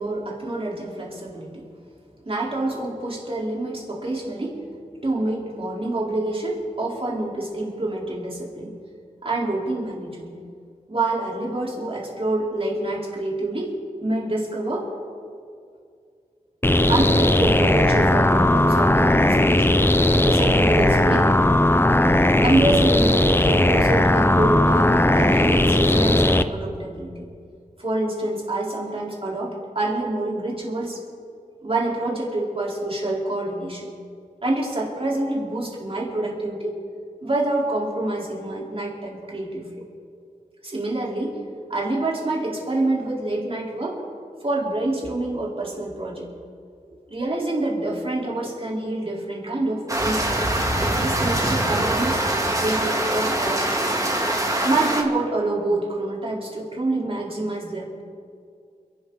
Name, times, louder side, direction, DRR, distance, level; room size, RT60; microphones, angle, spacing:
voice 1, 0.0-1.7 2.3-4.6 5.0-8.7 9.2-10.3 10.9-13.7 14.0-14.9 16.9-19.8 20.3-21.3 22.4-27.3 27.8-31.0 31.6-33.9 34.4-36.8 37.2-39.9 40.6-41.4 41.7-44.0 44.4-46.3 47.1-50.4 51.0-53.9 54.6-58.0, right 2 dB, 40° right, -3 dB, 4.0 m, -26 dB
sound 1, 16.6-26.4, left 1 dB, 15° left, 0.6 m, -17 dB
sound 2, 49.9-55.0, right 1 dB, 25° right, 2.1 m, -23 dB
30.0 x 12.0 x 4.0 m, 2.3 s
wide cardioid pair, 70°, 14 cm